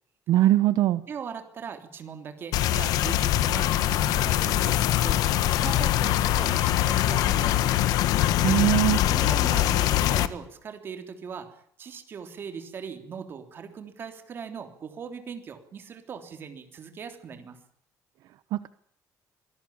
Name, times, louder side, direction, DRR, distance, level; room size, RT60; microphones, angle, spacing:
voice 1, 0.3-1.0 8.4-9.0 18.5-18.7, right 14 dB, 70° right, 13 dB, 1.0 m, -21 dB
voice 2, 1.1-5.2 5.5-7.9 9.0-11.5 11.8-17.6, right 6 dB, 35° right, 6 dB, 3.4 m, -40 dB
sound 1, 2.5-10.3, left 13 dB, 80° left, 1.5 m, -23 dB
25.5 x 18.0 x 8.8 m, 0.65 s
cardioid pair, 170°, 6 cm